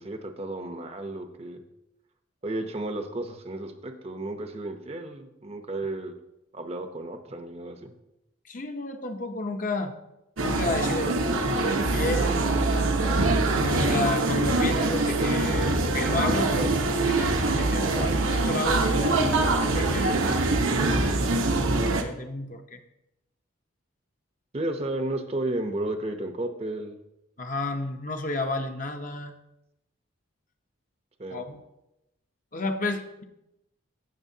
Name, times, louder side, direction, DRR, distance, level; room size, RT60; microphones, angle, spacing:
voice 1, 0.0-1.6 2.4-6.1 6.5-7.9 24.5-27.0 31.2-31.4, right 2 dB, 30° right, 6 dB, 0.7 m, -33 dB
voice 2, 8.5-9.9 10.4-12.4 13.5-20.4 21.0-21.2 21.8-22.8 27.4-29.3 31.3-31.6 32.5-33.2, left 2 dB, 40° left, 5 dB, 0.7 m, -32 dB
sound 1, 10.4-22.0, right 2 dB, 80° right, 1.0 m, -24 dB
16.0 x 6.7 x 2.8 m, 0.90 s
head